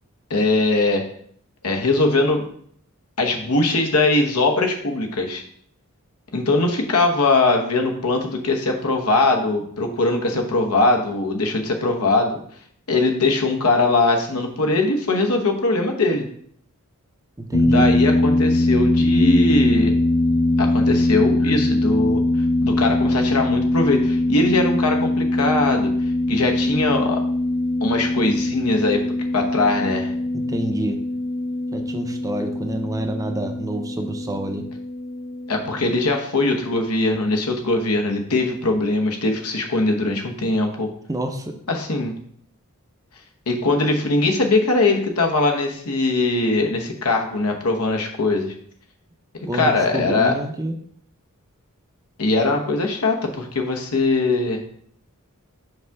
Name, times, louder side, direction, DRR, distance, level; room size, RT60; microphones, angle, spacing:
voice 1, 0.3-1.0 1.6-2.4 3.2-5.4 6.3-12.4 12.9-16.2 17.6-19.9 20.6-22.2 22.6-25.9 26.3-27.2 27.8-29.0 29.3-30.1 35.5-40.9 41.7-42.2 43.5-48.5 49.5-50.3 52.2-54.6, left 2 dB, 85° left, 3 dB, 1.1 m, -21 dB
voice 2, 17.4-17.9 30.3-31.0 31.7-34.7 41.1-41.6 49.5-50.8, right 1 dB, 15° right, 5 dB, 0.6 m, -28 dB
sound 1, 17.5-35.9, left 1 dB, 45° left, 0.6 m, -21 dB
5.4 x 3.5 x 5.8 m, 0.62 s
head